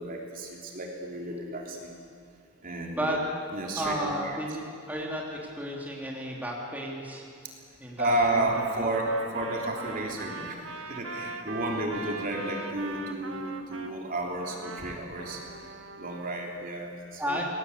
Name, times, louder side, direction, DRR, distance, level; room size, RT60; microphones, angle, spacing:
voice 1, 0.0-1.9 2.6-3.1 3.5-4.0 4.2-4.4 8.0-10.6 10.9-15.4 16.0-17.4, right 1 dB, 40° right, 0 dB, 3.4 m, -31 dB
voice 2, 3.8-7.2 7.8-8.5 10.4-10.5 17.2-17.4, equal, 10° right, -2 dB, 3.4 m, -33 dB
Trumpet, 8.4-13.9 14.4-16.4, right 3 dB, 65° right, 2.0 m, -41 dB
28.5 x 21.0 x 8.3 m, 2.5 s
head